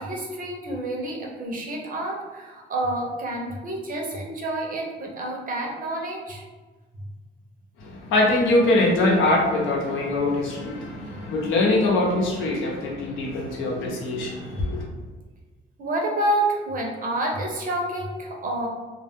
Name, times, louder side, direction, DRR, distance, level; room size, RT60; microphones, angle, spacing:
voice 1, 0.0-6.4 15.8-18.7, right 1 dB, 45° right, -1 dB, 0.7 m, -28 dB
voice 2, 7.8-14.8, left 2 dB, 85° left, -2 dB, 0.7 m, -23 dB
2.3 x 2.0 x 3.4 m, 1.3 s
cardioid pair, 90°, 20 cm